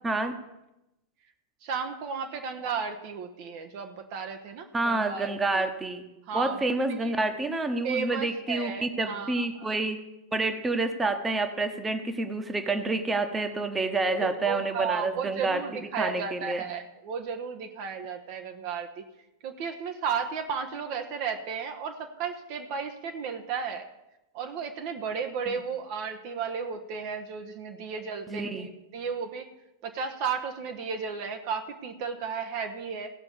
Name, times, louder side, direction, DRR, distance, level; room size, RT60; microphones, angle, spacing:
voice 1, 0.0-0.3 4.7-6.0 6.3-10.0 10.3-16.6 25.5-25.6 28.3-28.7, right 2 dB, 15° right, 7 dB, 1.2 m, -28 dB
voice 2, 1.6-5.7 6.3-6.7 7.0-7.1 7.8-9.7 14.4-19.0 19.4-23.9 24.3-29.5 29.8-33.1, right 6 dB, 45° right, 6 dB, 1.0 m, -34 dB
16.5 x 5.8 x 6.9 m, 0.93 s
figure-of-eight pair, 90°, 0 cm